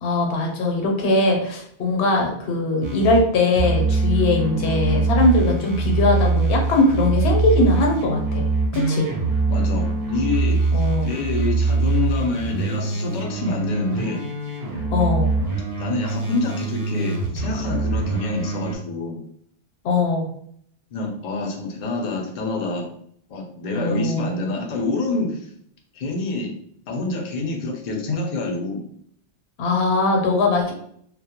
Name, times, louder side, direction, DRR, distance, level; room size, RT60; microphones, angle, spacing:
voice 1, 0.0-8.4 8.7-9.1 10.7-11.1 14.9-15.3 19.8-20.3 23.7-24.3 29.6-30.7, left 2 dB, 85° left, 1 dB, 0.9 m, -20 dB
sound 1, 2.8-3.3 3.6-18.8, right 3 dB, 65° right, 0.7 m, -23 dB
voice 2, 9.4-14.2 15.8-19.2 20.9-22.9 23.3-25.5 25.9-26.5 26.9-28.8, left 3 dB, 55° left, 1 dB, 0.6 m, -27 dB
2.2 x 2.0 x 2.8 m, 0.66 s
omnidirectional pair, 1.1 m